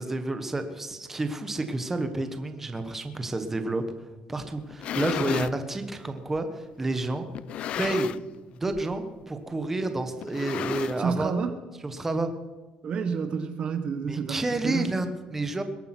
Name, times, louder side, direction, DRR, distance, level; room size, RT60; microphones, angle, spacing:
voice 1, 0.0-3.8 4.3-7.3 7.8-8.1 8.5-11.3 11.8-12.3 14.1-15.6, right 2 dB, 15° right, 8 dB, 1.2 m, -30 dB
sound 1, 4.6-5.6 6.3-6.4 7.3-8.4 8.7-9.0 9.2-9.3 10.2-11.3, left 11 dB, 55° left, 0.4 m, -33 dB
voice 2, 11.0-11.6 12.8-14.9, right 5 dB, 40° right, 9 dB, 1.0 m, -29 dB
21.5 x 8.7 x 6.0 m, 1.2 s
cardioid pair, 145°, 2 cm